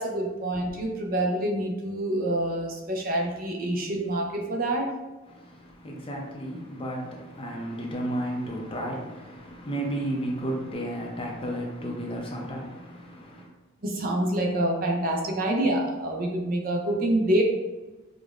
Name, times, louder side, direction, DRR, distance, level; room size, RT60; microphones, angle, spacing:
voice 1, 0.0-4.9 13.8-17.4, right 1 dB, 45° right, 0.5 m, -26 dB
voice 2, 5.3-13.5, right 1 dB, 25° left, 0.5 m, -33 dB
4.9 x 2.1 x 2.4 m
head